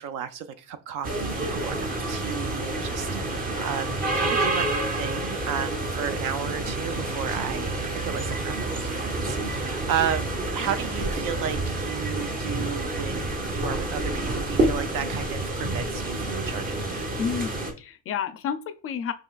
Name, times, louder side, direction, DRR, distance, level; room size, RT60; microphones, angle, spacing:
voice 1, 0.0-16.8, right 8 dB, 60° right, 0.6 m, -33 dB
sound 1, 1.0-17.7, right 2 dB, 25° right, 0.8 m, -28 dB
sound 2, 5.8-15.4, right 2 dB, 40° right, 1.4 m, -45 dB
voice 2, 17.2-19.1, left 7 dB, 40° left, 0.4 m, -30 dB
5.3 x 2.9 x 2.4 m
cardioid pair, 140°, 36 cm